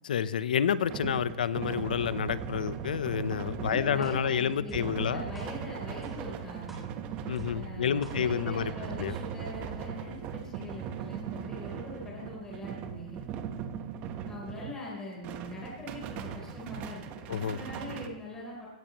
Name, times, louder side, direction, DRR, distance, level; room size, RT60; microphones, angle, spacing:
voice 1, 0.0-5.2 7.3-8.7 9.0-9.2 17.3-17.6, left 8 dB, 90° left, 16 dB, 0.7 m, -29 dB
sound 1, 0.6-14.9 15.2-18.1, right 8 dB, 30° right, 1.1 m, -39 dB
voice 2, 3.7-6.9 7.4-13.3 14.3-18.7, left 1 dB, 15° left, -5 dB, 3.6 m, -42 dB
sound 2, 4.0-4.1 4.7-4.8 5.3-5.5 6.0-6.1 6.7-6.8 7.4-7.5 8.0-8.1, equal, 5° right, 3.4 m, -45 dB
17.5 x 14.0 x 3.0 m, 1.2 s
hypercardioid pair, 155°, 5 cm